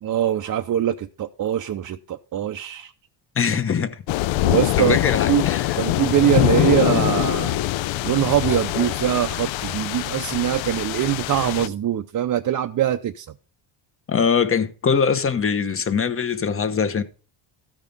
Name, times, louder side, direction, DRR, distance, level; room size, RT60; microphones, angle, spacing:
voice 1, 0.0-2.9 4.4-5.0 5.3-5.5 5.8-7.6 8.0-13.3, right 11 dB, 40° right, 0.6 m, -23 dB
voice 2, 3.4-4.0 4.8-5.8 14.1-17.0, left 6 dB, 25° left, 1.0 m, -22 dB
sound 1, 4.1-11.7, left 15 dB, 70° left, 0.6 m, -23 dB
14.0 x 5.2 x 5.4 m
cardioid pair, 115°, 49 cm